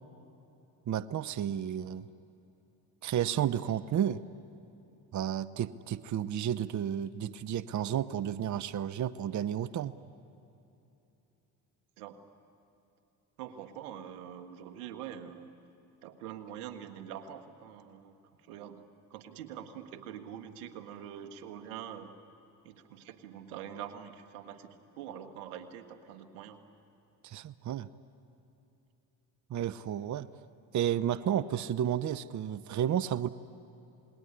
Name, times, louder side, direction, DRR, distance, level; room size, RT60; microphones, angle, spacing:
voice 1, 0.9-2.1 3.0-4.2 5.1-9.9 27.2-27.9 29.5-30.3 30.7-33.3, right 10 dB, 40° right, 15 dB, 0.8 m, -32 dB
voice 2, 13.4-15.5 16.0-18.2 18.5-18.8 19.1-22.1 22.6-26.6, right 9 dB, 90° right, 7 dB, 1.8 m, -44 dB
27.5 x 20.5 x 9.9 m, 3.0 s
supercardioid pair, 70°, 44 cm